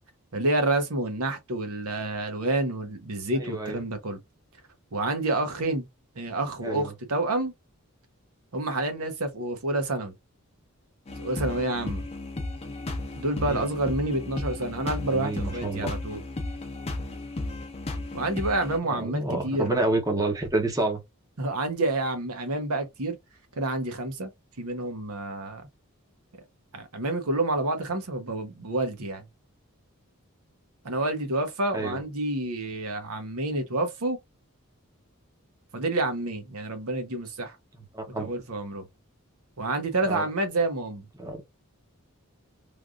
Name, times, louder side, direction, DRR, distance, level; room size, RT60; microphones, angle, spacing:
voice 1, 0.3-4.2 4.9-5.8 6.2-7.5 8.5-10.1 11.2-12.0 13.1-16.2 18.1-19.9 21.4-23.2 23.6-24.3 24.6-25.6 26.7-29.3 30.8-34.2 35.7-37.6 38.2-38.9 39.6-41.1, right 2 dB, 85° right, 0.9 m, -28 dB
voice 2, 3.4-3.8 6.6-6.9 13.4-13.7 15.0-15.9 18.9-21.0 31.7-32.0 37.9-38.3 40.1-40.3 41.2-41.4, right 2 dB, 15° right, 0.8 m, -29 dB
sound 1, 11.1-18.8, left 2 dB, 30° left, 0.5 m, -34 dB
3.3 x 2.4 x 2.4 m
head